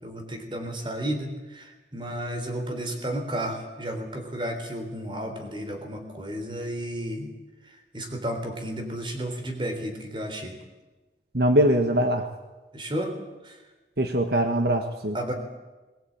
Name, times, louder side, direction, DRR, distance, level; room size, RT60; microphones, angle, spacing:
voice 1, 0.0-7.3 7.9-10.6 12.7-13.1 13.5-13.6 15.1-15.3, right 1 dB, 30° right, 5 dB, 3.7 m, -32 dB
voice 2, 11.3-12.3 14.0-15.2, right 1 dB, 65° right, 5 dB, 1.5 m, -22 dB
21.5 x 19.5 x 8.8 m, 1.2 s
head